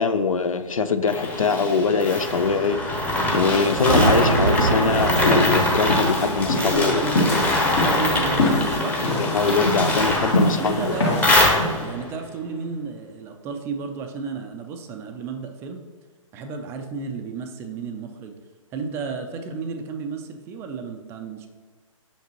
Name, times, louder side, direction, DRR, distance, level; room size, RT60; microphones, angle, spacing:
voice 1, 0.0-3.1 3.3-7.0 9.2-11.0, left 5 dB, 80° left, 11 dB, 0.5 m, -23 dB
sound 1, 1.1-12.1, left 1 dB, 10° left, 0.8 m, -23 dB
sound 2, 3.4-11.9, left 2 dB, 55° left, 1.6 m, -26 dB
sound 3, 3.6-8.0, right 3 dB, 90° right, 0.6 m, -25 dB
voice 2, 6.5-7.3 7.7-9.1 10.6-11.2 11.8-15.8 16.3-18.4 18.7-21.5, right 5 dB, 15° right, 5 dB, 0.4 m, -32 dB
6.5 x 5.5 x 3.0 m, 1.5 s
figure-of-eight pair, 130°, 17 cm